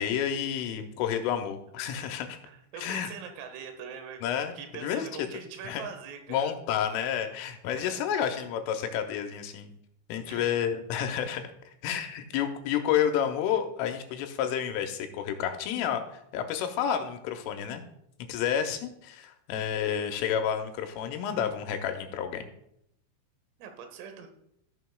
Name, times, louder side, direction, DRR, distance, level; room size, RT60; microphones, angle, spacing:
voice 1, 0.0-2.4 2.8-3.1 4.2-4.5 4.8-5.1 5.6-5.8 6.3-9.7 10.1-11.4 11.8-17.8 18.3-22.4, left 9 dB, 85° left, 6 dB, 3.3 m, -30 dB
voice 2, 2.5-4.2 4.6-6.5 7.7-8.0 10.3-10.6 23.6-24.3, right 7 dB, 85° right, 5 dB, 3.7 m, -42 dB
15.0 x 6.2 x 2.3 m, 0.75 s
omnidirectional pair, 5.7 m